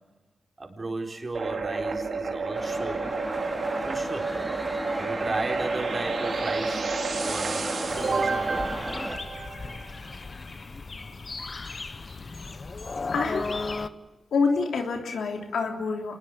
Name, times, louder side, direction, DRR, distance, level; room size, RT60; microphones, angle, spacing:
voice 1, 0.6-3.2 3.8-4.4 5.0-6.9 7.2-7.7 8.1-8.7, right 2 dB, 40° right, 3 dB, 4.4 m, -34 dB
sound 1, 1.3-10.0, right 4 dB, 70° right, 2.8 m, -30 dB
sound 2, 2.5-9.2, equal, ahead, 3.2 m, -35 dB
sound 3, 7.9-13.9, left 3 dB, 45° left, 1.1 m, -36 dB
voice 2, 13.1-13.5 14.3-16.2, left 4 dB, 85° left, 3 dB, 3.3 m, -27 dB
27.0 x 21.0 x 6.9 m, 1.2 s
cardioid pair, 60°, 0 cm